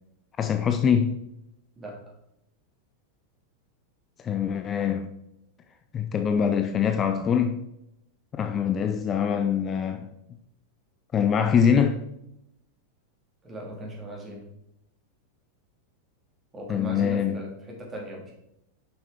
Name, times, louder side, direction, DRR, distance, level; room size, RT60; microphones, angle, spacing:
voice 1, 0.4-1.2 4.2-5.1 5.9-7.6 8.4-10.1 11.1-12.0 16.7-17.4, left 7 dB, 25° left, 0.4 m, -24 dB
voice 2, 1.7-2.1 13.4-14.5 16.5-18.3, right 1 dB, 20° right, 2.2 m, -38 dB
6.8 x 5.6 x 3.5 m
figure-of-eight pair, 90°, 0 cm